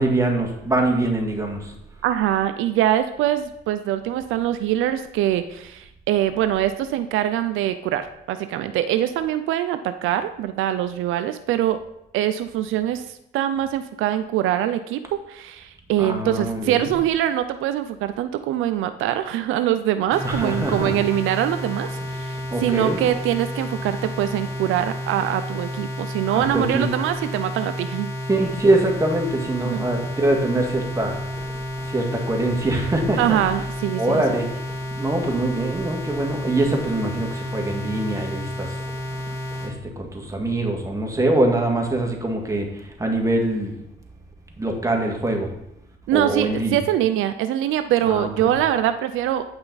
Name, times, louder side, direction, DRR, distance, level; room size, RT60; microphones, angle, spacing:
voice 1, 0.0-1.7 16.0-16.9 20.2-21.0 22.5-23.0 26.3-26.9 28.3-31.2 31.9-33.4 34.0-34.6 34.9-38.7 39.6-43.7 44.6-45.5 46.1-46.8 48.0-48.5, right 2 dB, 15° right, 2 dB, 1.8 m, -23 dB
voice 2, 2.0-11.8 12.1-13.0 13.3-28.1 29.6-29.8 33.2-34.2 46.1-49.4, right 12 dB, 90° right, 11 dB, 0.5 m, -23 dB
sound 1, 20.1-39.7, left 1 dB, 15° left, 2.0 m, -31 dB
8.8 x 5.6 x 4.0 m, 0.82 s
cardioid pair, 90°, 20 cm